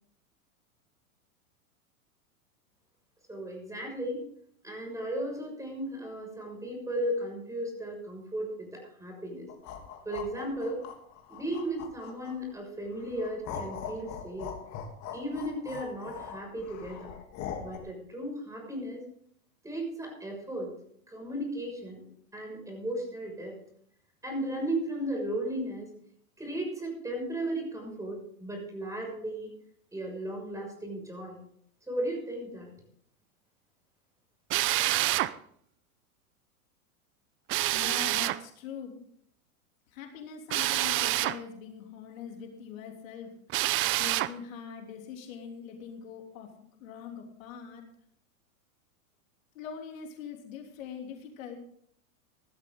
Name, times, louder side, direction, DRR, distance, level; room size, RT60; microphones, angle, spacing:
voice 1, 3.3-4.2 4.6-9.5 10.0-10.8 11.3-14.5 15.1-17.1 17.6-19.0 19.6-20.7 21.1-22.0 22.3-23.6 24.2-25.9 26.4-29.5 29.9-31.4 31.9-32.7, right 1 dB, 5° right, 1 dB, 6.2 m, -35 dB
sound 1, 9.5-12.5 13.0-17.8, left 8 dB, 40° left, 3.1 m, -41 dB
Drill, 34.5-35.3 37.5-38.4 40.5-41.4 43.5-44.3, right 16 dB, 30° right, 0.6 m, -27 dB
voice 2, 37.7-39.0 39.9-43.3 44.0-46.5 46.8-47.8 49.5-51.6, left 7 dB, 65° left, 2 dB, 3.3 m, -42 dB
16.5 x 12.5 x 3.9 m, 0.65 s
hypercardioid pair, 115°, 43 cm